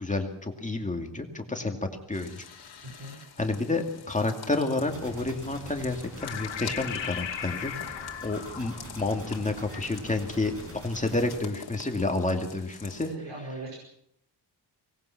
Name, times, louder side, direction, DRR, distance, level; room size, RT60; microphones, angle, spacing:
voice 1, 0.0-2.4 3.4-7.7 8.2-10.5 10.8-13.1, left 2 dB, 15° left, 4 dB, 2.3 m, -30 dB
sound 1, 2.1-13.1, left 6 dB, 60° left, 2.5 m, -47 dB
voice 2, 2.8-3.2 13.0-13.8, right 2 dB, 75° right, -2 dB, 5.1 m, -39 dB
sound 2, 4.8-11.4, right 1 dB, 30° right, 6.9 m, -45 dB
sound 3, 6.2-11.0, left 8 dB, 90° left, 1.7 m, -38 dB
24.0 x 19.0 x 5.9 m, 0.71 s
wide cardioid pair, 135°, 43 cm